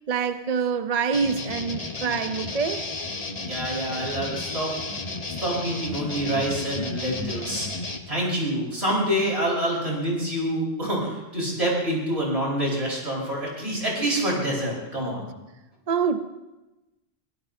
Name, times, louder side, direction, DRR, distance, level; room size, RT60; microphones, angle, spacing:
voice 1, 0.1-2.8 15.9-16.2, right 6 dB, 45° right, 0.6 m, -25 dB
sound 1, 1.1-8.0, left 3 dB, 35° left, 1.1 m, -33 dB
voice 2, 3.4-4.7 5.3-7.7 8.1-15.2, right 1 dB, 65° right, 5.1 m, -27 dB
24.0 x 16.5 x 2.6 m
omnidirectional pair, 1.2 m